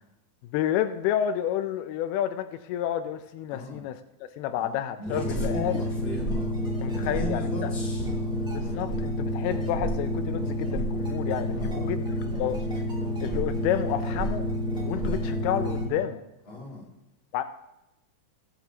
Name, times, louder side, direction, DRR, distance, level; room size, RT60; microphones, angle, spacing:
voice 1, 0.5-4.0 4.4-5.8 6.8-7.7 8.5-12.1 12.4-12.6 13.2-14.5 14.8-16.2 17.3-17.4, left 10 dB, 90° left, 9 dB, 2.6 m, -30 dB
voice 2, 3.5-3.8 4.5-6.6 7.0-8.5 11.6-12.0 16.5-16.9, left 2 dB, 35° left, -5 dB, 3.5 m, -39 dB
sound 1, 5.0-15.9, equal, ahead, 1.3 m, -29 dB
20.0 x 7.2 x 2.9 m, 0.90 s
omnidirectional pair, 4.4 m